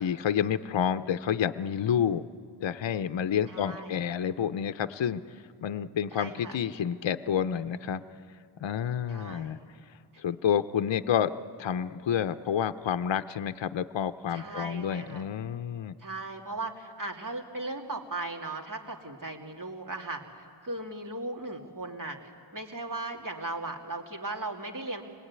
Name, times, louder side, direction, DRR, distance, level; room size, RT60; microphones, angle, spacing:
voice 1, 0.0-2.3 2.6-8.0 8.6-9.6 10.2-11.3 11.6-15.9, left 8 dB, 60° left, 11 dB, 0.7 m, -29 dB
voice 2, 3.5-4.0 6.1-6.6 9.1-9.7 14.3-15.3 16.0-20.2 20.6-25.0, right 2 dB, 40° right, 2 dB, 2.6 m, -37 dB
25.0 x 20.0 x 9.6 m, 2.3 s
wide cardioid pair, 75°, 49 cm